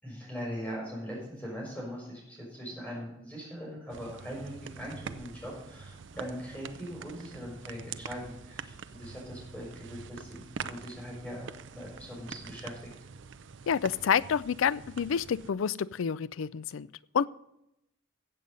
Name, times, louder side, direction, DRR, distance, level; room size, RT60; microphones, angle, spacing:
voice 1, 0.0-12.9, equal, 5° left, -3 dB, 6.0 m, -41 dB
sound 1, 3.9-15.5, right 6 dB, 70° right, 0.6 m, -45 dB
voice 2, 13.7-16.9 17.1-17.3, left 7 dB, 85° left, 19 dB, 0.4 m, -28 dB
15.5 x 7.8 x 5.4 m, 0.84 s
head